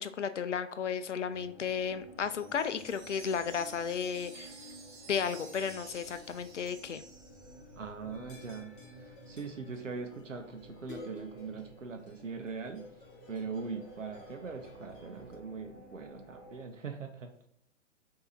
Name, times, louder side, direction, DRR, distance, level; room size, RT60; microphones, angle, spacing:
voice 1, 0.0-4.6 5.1-7.0, left 7 dB, 70° left, 11 dB, 0.6 m, -34 dB
sound 1, 1.3-16.7, equal, 15° left, 0.3 m, -53 dB
Wind chime, 2.4-7.8, right 3 dB, 20° right, 0.8 m, -52 dB
voice 2, 7.8-8.7 9.1-12.9 13.3-17.5, right 5 dB, 85° right, 5 dB, 0.7 m, -41 dB
sound 2, 8.1-15.3, left 2 dB, 45° left, 1.3 m, -54 dB
5.5 x 2.8 x 2.6 m, 0.73 s
figure-of-eight pair, 120°, 37 cm